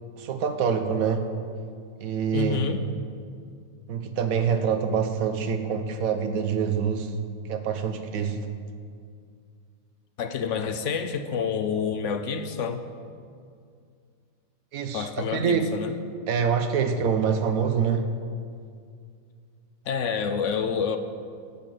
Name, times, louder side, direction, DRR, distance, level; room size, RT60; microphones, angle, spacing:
voice 1, 0.2-1.3 2.0-2.6 3.9-7.1 7.5-8.4 14.7-15.7 16.3-18.1, right 7 dB, 80° right, 8 dB, 1.3 m, -25 dB
voice 2, 2.3-2.8 10.2-12.8 14.9-15.9 19.9-21.0, left 6 dB, 65° left, 9 dB, 0.9 m, -28 dB
10.5 x 7.4 x 7.6 m, 2.3 s
omnidirectional pair, 1.5 m